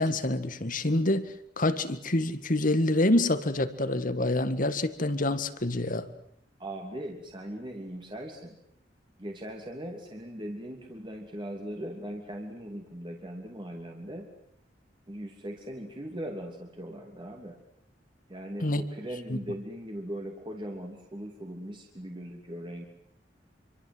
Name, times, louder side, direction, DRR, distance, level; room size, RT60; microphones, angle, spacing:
voice 1, 0.0-6.1 18.6-18.8 19.3-19.4, left 1 dB, 50° left, 11 dB, 1.9 m, -27 dB
voice 2, 6.6-8.6 9.2-14.3 15.1-17.6 18.3-22.9, right 1 dB, 30° right, 2 dB, 3.0 m, -39 dB
26.5 x 25.0 x 7.9 m, 0.69 s
head